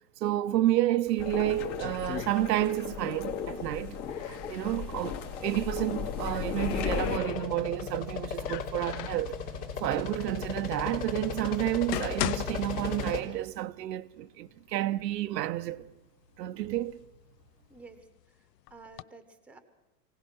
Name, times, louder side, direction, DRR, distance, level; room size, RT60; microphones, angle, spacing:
voice 1, 0.2-9.4 9.8-15.9 16.4-17.0, right 14 dB, 85° right, 0.9 m, -30 dB
sound 1, 1.1-3.0 3.2-4.7 5.8-7.8 8.4-9.3 10.1-10.2 10.9-11.0 11.6-13.6 13.9-14.0 14.7-14.8 15.2-15.8 16.4-18.0 18.7-19.0, left 14 dB, 85° left, 0.7 m, -39 dB
sound 2, 1.2-7.2, left 7 dB, 45° left, 2.8 m, -36 dB
sound 3, 4.6-13.2, left 6 dB, 65° left, 3.6 m, -37 dB
voice 2, 17.7-19.6, right 3 dB, 5° right, 1.2 m, -52 dB
24.0 x 17.5 x 6.3 m
supercardioid pair, 145°, 48 cm